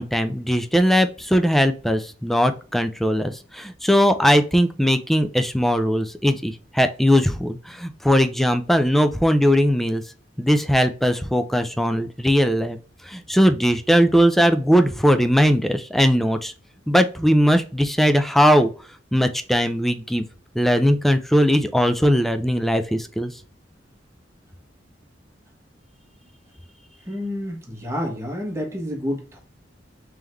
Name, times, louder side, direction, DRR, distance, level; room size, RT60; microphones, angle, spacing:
voice 1, 0.0-10.0 10.4-12.8 13.1-16.5 16.9-18.7 19.1-20.2 20.6-23.3, equal, ahead, 8 dB, 0.4 m, -19 dB
voice 2, 27.1-29.4, left 1 dB, 15° right, 1 dB, 1.2 m, -29 dB
3.7 x 3.4 x 3.0 m, 0.37 s
head